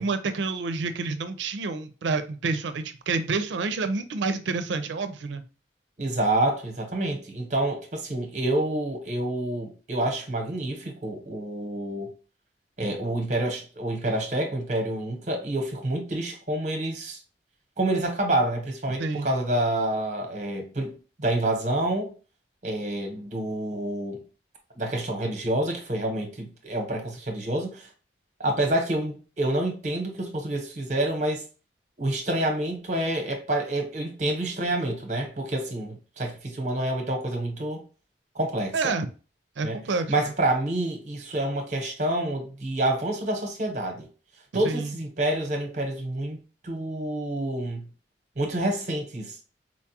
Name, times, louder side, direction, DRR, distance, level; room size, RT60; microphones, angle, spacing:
voice 1, 0.0-5.4 19.0-19.3 38.7-39.1 39.6-40.1 44.6-44.9, right 4 dB, 80° right, 0.4 m, -28 dB
voice 2, 6.0-12.1 12.8-17.2 17.8-22.1 22.6-24.2 24.7-27.9 28.4-31.4 32.0-37.8 38.3-38.9 39.6-39.8 40.1-44.1 44.5-46.4 46.6-47.9 48.4-49.4, right 1 dB, 40° right, 0.9 m, -28 dB
4.1 x 2.3 x 2.8 m
head